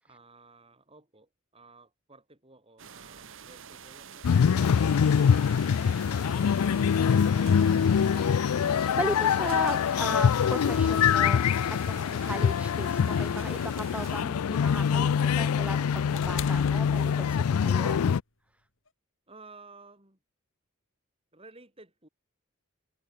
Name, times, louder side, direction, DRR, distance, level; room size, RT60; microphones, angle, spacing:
voice 1, 0.0-8.2 19.3-20.2 21.3-22.1, right 3 dB, 25° right, 6.9 m, -55 dB
sound 1, 2.8-14.3, right 7 dB, 60° right, 1.4 m, -47 dB
sound 2, 4.2-18.2, left 7 dB, 85° left, 0.4 m, -24 dB
voice 2, 8.7-18.2, right 1 dB, 5° right, 1.6 m, -37 dB
sound 3, 13.3-17.6 18.9-19.0, left 5 dB, 60° left, 5.6 m, -43 dB
head